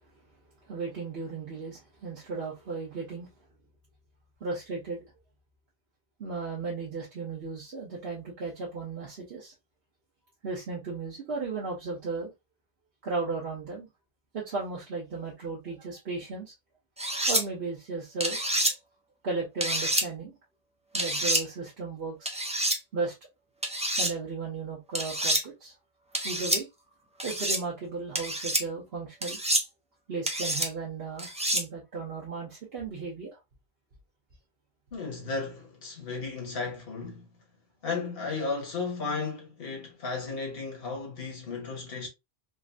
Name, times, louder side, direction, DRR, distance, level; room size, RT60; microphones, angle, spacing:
voice 1, 0.7-3.3 4.4-5.0 6.2-9.5 10.4-12.3 13.0-13.9 14.3-16.5 17.3-18.4 19.2-20.3 20.9-22.3 22.9-23.1 24.0-25.7 26.2-26.7 27.2-29.4 30.1-33.4, right 4 dB, 75° right, 1.1 m, -35 dB
sound 1, 17.0-17.4 18.2-18.7 19.6-20.1 20.9-21.4 22.3-22.8 23.6-24.1 24.9-25.4 26.1-26.6 27.2-27.6 28.1-28.6 29.2-29.6 30.3-30.7 31.2-31.6, right 1 dB, 10° right, 0.4 m, -27 dB
voice 2, 34.9-37.3 37.8-42.1, left 4 dB, 70° left, 1.3 m, -34 dB
3.7 x 2.1 x 2.4 m
omnidirectional pair, 1.0 m